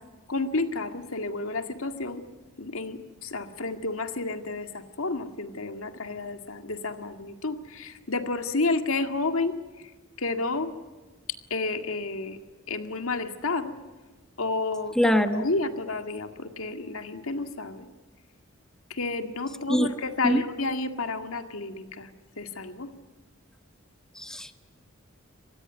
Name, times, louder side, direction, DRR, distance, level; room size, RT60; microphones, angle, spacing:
voice 1, 0.3-2.2 2.6-9.5 10.2-10.7 11.5-12.4 12.7-13.7 14.4-17.8 18.9-22.1 22.4-22.9, left 3 dB, 90° left, 7 dB, 2.0 m, -31 dB
voice 2, 14.9-15.4 19.7-19.9 20.2-20.4 24.2-24.5, equal, 5° left, 8 dB, 1.1 m, -23 dB
25.0 x 20.0 x 9.2 m, 1.2 s
head